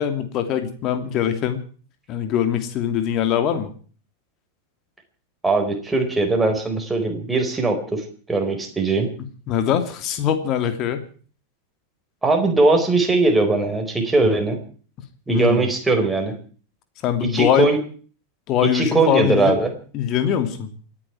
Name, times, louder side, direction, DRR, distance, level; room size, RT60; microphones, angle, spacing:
voice 1, 0.0-1.6 2.1-3.7 9.5-11.0 15.3-15.7 17.0-17.7 18.5-19.6 19.9-20.7, left 9 dB, 35° left, 8 dB, 2.9 m, -22 dB
voice 2, 5.4-8.0 8.3-9.1 12.2-14.6 15.3-16.3 17.2-17.8 18.6-19.7, right 3 dB, 10° right, 3 dB, 4.6 m, -20 dB
28.5 x 10.5 x 4.7 m, 0.42 s
figure-of-eight pair, 90°, 0 cm